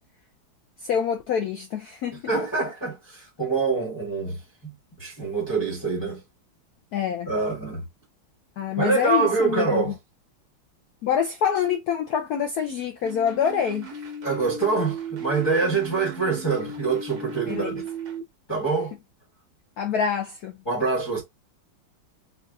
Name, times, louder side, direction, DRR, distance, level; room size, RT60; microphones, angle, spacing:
voice 1, 0.8-2.3 6.9-7.3 8.6-9.9 11.0-14.1 17.5-17.8 19.8-20.6, left 8 dB, 90° left, 0.8 m, -26 dB
voice 2, 2.3-4.7 5.0-6.2 7.3-7.8 8.8-9.9 14.2-17.8 18.5-18.9 20.7-21.2, right 4 dB, 15° left, 0.9 m, -25 dB
sound 1, 13.0-18.2, right 4 dB, 60° right, 1.3 m, -36 dB
4.8 x 2.4 x 2.3 m
omnidirectional pair, 2.2 m